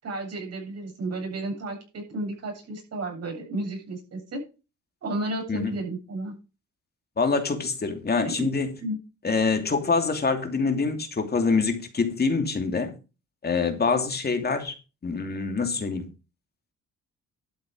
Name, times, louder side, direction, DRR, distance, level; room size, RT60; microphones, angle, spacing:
voice 1, 0.0-4.4 5.0-6.3 8.4-8.5 8.8-9.0, right 1 dB, 55° right, 7.7 m, -32 dB
voice 2, 7.2-8.7 9.2-12.9 13.4-14.7 15.0-16.0, left 4 dB, 30° left, 2.7 m, -25 dB
12.0 x 7.5 x 5.0 m
cardioid pair, 90°, 30 cm